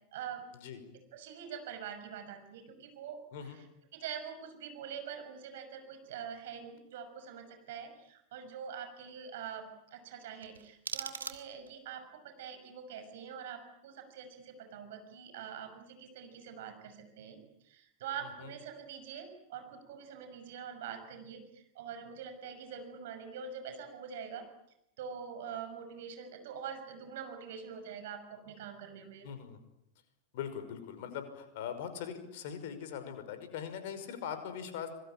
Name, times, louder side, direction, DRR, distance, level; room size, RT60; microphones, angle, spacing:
voice 1, 0.1-0.4 1.1-3.7 3.9-17.4 17.6-24.5 25.0-29.3, right 7 dB, 55° right, 7 dB, 6.2 m, -44 dB
sound 1, 10.4-11.9, right 6 dB, 70° right, 2.4 m, -42 dB
voice 2, 29.2-29.6 30.3-34.9, left 8 dB, 50° left, 9 dB, 5.5 m, -41 dB
25.5 x 23.0 x 8.8 m, 0.81 s
figure-of-eight pair, 90°, 0 cm